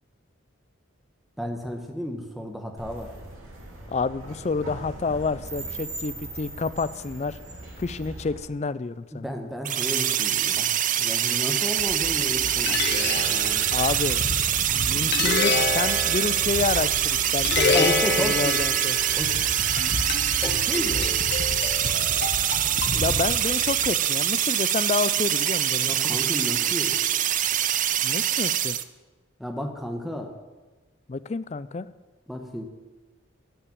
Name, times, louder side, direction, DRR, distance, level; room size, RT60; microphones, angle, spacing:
voice 1, 1.4-3.1 9.1-10.7 11.0-13.7 14.9-15.2 15.4-15.5 17.7-18.6 19.2-19.3 20.4-21.2 25.8-27.0 29.4-30.3 32.3-32.6, equal, ahead, 3 dB, 1.1 m, -33 dB
sound 1, 2.8-8.4, right 2 dB, 85° right, 3.2 m, -40 dB
voice 2, 3.9-7.4 7.8-9.3 13.7-14.2 14.7-17.9 18.2-19.0 22.9-26.2 28.0-28.8 31.1-31.9, left 4 dB, 35° left, 16 dB, 0.4 m, -29 dB
sound 2, 9.6-28.8, right 11 dB, 40° right, 0.4 m, -24 dB
sound 3, 11.8-23.9, left 4 dB, 50° left, 0.9 m, -29 dB
12.0 x 5.7 x 8.6 m, 1.2 s
head